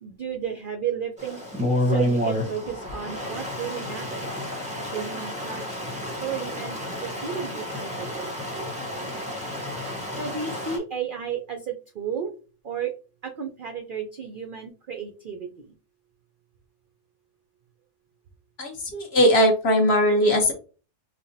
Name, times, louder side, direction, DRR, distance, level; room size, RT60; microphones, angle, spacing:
voice 1, 0.0-1.4 1.9-4.3 4.9-5.8 6.2-8.3 10.2-12.3 12.6-12.9 13.4-15.5, right 7 dB, 65° right, 3 dB, 0.5 m, -33 dB
Stream, 1.2-10.8, left 1 dB, 5° right, 0.7 m, -30 dB
voice 2, 18.6-20.5, equal, 50° left, 3 dB, 1.1 m, -20 dB
5.3 x 2.1 x 2.7 m, 0.35 s
omnidirectional pair, 1.5 m